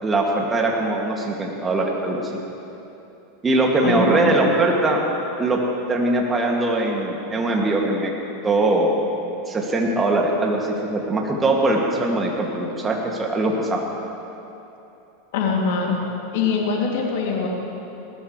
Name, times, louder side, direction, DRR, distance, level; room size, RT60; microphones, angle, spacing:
voice 1, 0.0-2.4 3.4-5.0 5.4-5.6 5.9-8.1 8.4-8.9 9.5-13.8, right 2 dB, 20° right, -1 dB, 2.4 m, -21 dB
voice 2, 3.8-4.4 15.3-16.0 16.3-17.5, left 5 dB, 60° left, -1 dB, 2.8 m, -23 dB
20.5 x 18.5 x 3.3 m, 2.9 s
figure-of-eight pair, 85°, 0 cm